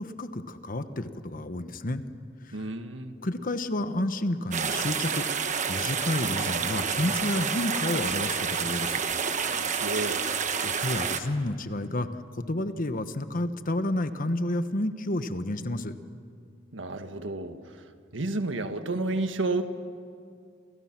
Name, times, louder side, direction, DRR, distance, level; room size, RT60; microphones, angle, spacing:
voice 1, 0.0-2.0 2.4-2.7 3.2-5.3 5.7-9.0 10.6-12.1 12.4-15.9, left 1 dB, 45° left, 10 dB, 1.2 m, -30 dB
voice 2, 2.5-3.1 9.5-10.2 16.7-17.8 18.1-19.6, right 2 dB, 80° right, 8 dB, 1.6 m, -31 dB
sound 1, 4.5-11.2, right 6 dB, 40° right, 1.3 m, -29 dB
29.5 x 28.0 x 6.1 m, 2.4 s
head